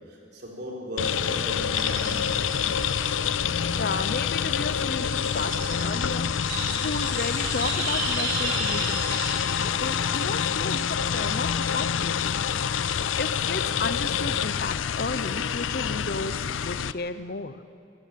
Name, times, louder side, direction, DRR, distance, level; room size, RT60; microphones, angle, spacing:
voice 1, 0.1-2.5, equal, 55° right, -2 dB, 4.2 m, -37 dB
sound 1, 1.0-16.9, left 7 dB, 85° left, 0.5 m, -27 dB
sound 2, 1.7-12.6, right 3 dB, 85° right, 3.8 m, -36 dB
voice 2, 3.8-6.3 6.7-12.4 12.7-17.6, left 3 dB, 55° left, 12 dB, 0.8 m, -33 dB
24.0 x 14.0 x 7.6 m, 2.4 s
head